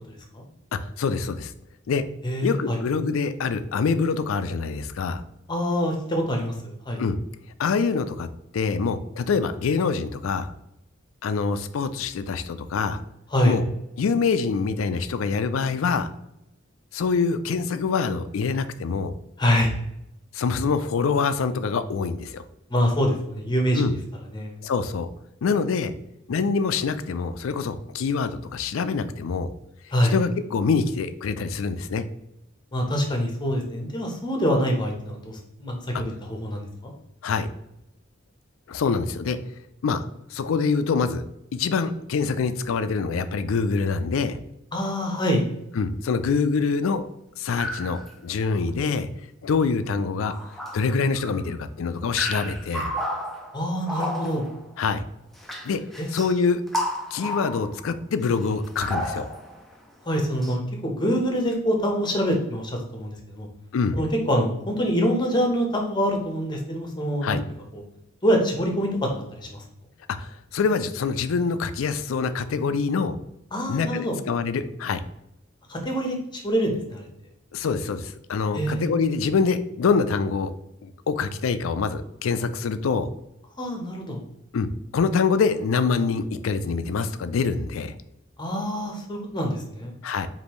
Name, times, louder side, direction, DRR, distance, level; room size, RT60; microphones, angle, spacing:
voice 1, 1.0-1.5 1.9-2.0 2.4-5.2 7.0-7.2 7.6-8.3 8.5-10.5 11.2-13.0 13.4-13.7 14.0-16.1 16.9-19.1 20.3-22.4 23.8-23.9 24.6-25.1 25.4-25.9 26.3-29.5 30.1-32.0 37.2-37.5 38.7-39.4 39.8-41.2 41.5-44.4 45.7-47.1 47.4-49.1 49.4-50.3 50.7-52.9 54.8-55.0 55.6-55.8 56.1-56.6 57.1-59.3 63.7-64.0 67.2-67.4 70.2-73.2 73.7-75.0 77.5-80.5 80.8-83.1 84.5-87.9 90.0-90.3, left 5 dB, 85° left, 11 dB, 0.4 m, -25 dB
voice 2, 2.2-2.8 5.5-7.0 13.3-13.6 19.4-19.7 22.7-23.8 24.3-24.5 29.9-30.1 32.7-36.9 44.7-45.4 53.5-54.4 56.0-56.1 60.1-63.5 63.9-67.4 67.7-67.8 68.2-69.1 69.4-69.6 73.5-74.2 75.7-76.2 76.4-77.1 78.5-78.9 83.6-84.2 88.4-89.9, equal, 20° left, 1 dB, 0.9 m, -25 dB
sound 1, 47.6-48.1 48.7-48.8 49.7-49.8 50.2-51.5 52.1-54.7 55.4-56.4 56.7-57.9 58.2-59.8 60.4-60.5, equal, ahead, 0.5 m, -32 dB
5.1 x 2.7 x 3.0 m, 0.86 s
head